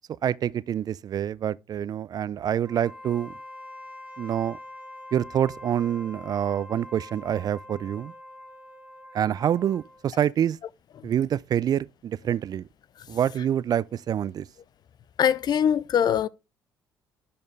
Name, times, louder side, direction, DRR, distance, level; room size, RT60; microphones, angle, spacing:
voice 1, 0.2-3.3 4.2-4.6 5.1-8.1 9.1-10.6 11.0-12.7 13.1-14.5, right 10 dB, 45° right, 0.3 m, -26 dB
Wind instrument woodwind instrument, 2.6-10.1, left 1 dB, 15° right, 1.6 m, -44 dB
voice 2, 15.2-16.3, left 8 dB, 50° left, 0.5 m, -22 dB
11.0 x 4.4 x 3.2 m
hypercardioid pair, 55°, 9 cm